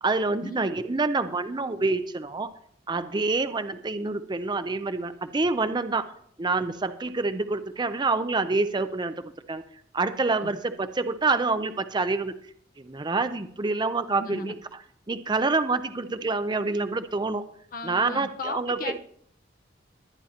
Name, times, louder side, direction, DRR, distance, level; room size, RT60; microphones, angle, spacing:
voice 1, 0.0-2.5 2.9-6.1 6.4-9.6 9.9-12.3 12.8-14.6 15.1-17.4 17.8-19.0, right 3 dB, 25° right, 10 dB, 0.5 m, -27 dB
voice 2, 14.1-14.5 17.7-19.0, left 3 dB, 50° left, 7 dB, 0.7 m, -36 dB
21.5 x 9.8 x 2.9 m, 0.63 s
head